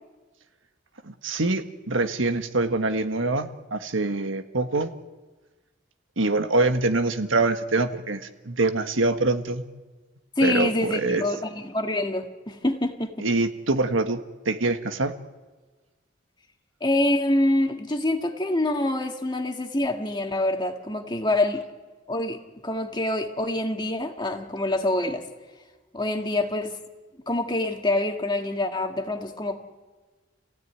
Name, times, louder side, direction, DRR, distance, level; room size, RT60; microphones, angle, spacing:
voice 1, 1.0-4.9 6.2-9.6 10.4-11.2 13.2-14.2 14.4-15.1, right 2 dB, 90° right, 7 dB, 1.5 m, -24 dB
voice 2, 10.4-13.3 16.8-21.6 22.1-25.2 25.9-26.8 27.3-29.6, left 1 dB, 25° left, 4 dB, 1.8 m, -26 dB
30.0 x 16.0 x 9.5 m, 1.3 s
head